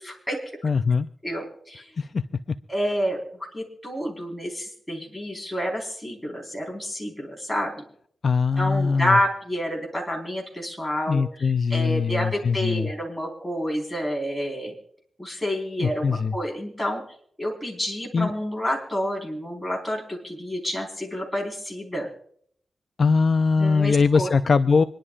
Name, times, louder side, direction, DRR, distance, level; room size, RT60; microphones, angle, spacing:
voice 1, 0.0-0.7 1.2-1.9 2.7-3.2 3.5-7.8 8.6-14.7 15.2-17.0 17.4-22.1 23.6-24.3, equal, 5° left, -1 dB, 4.4 m, -29 dB
voice 2, 0.6-1.1 2.0-2.2 8.2-9.2 11.1-12.9 15.8-16.3 18.1-18.3 23.0-24.8, left 5 dB, 45° left, 10 dB, 0.4 m, -21 dB
26.5 x 11.0 x 2.4 m, 0.63 s
wide cardioid pair, 120°, 0 cm